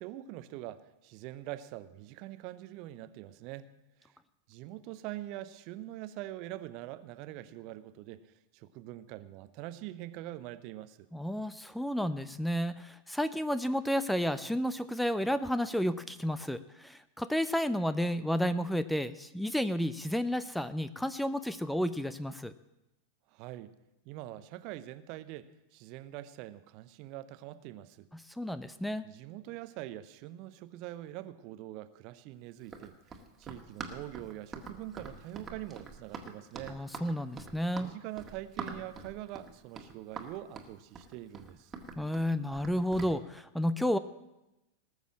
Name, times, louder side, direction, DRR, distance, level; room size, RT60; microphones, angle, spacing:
voice 1, 0.0-3.7 4.0-4.1 4.5-11.1 23.3-23.7 24.0-28.1 29.0-32.9 33.4-36.8 37.8-41.7, right 14 dB, 45° right, 14 dB, 0.7 m, -44 dB
voice 2, 11.1-22.5 28.1-29.0 36.7-37.9 42.0-44.0, equal, ahead, 13 dB, 0.5 m, -31 dB
Run, 32.6-43.2, right 4 dB, 20° right, 1.7 m, -45 dB
19.0 x 6.6 x 7.5 m, 0.95 s
figure-of-eight pair, 90°, 0 cm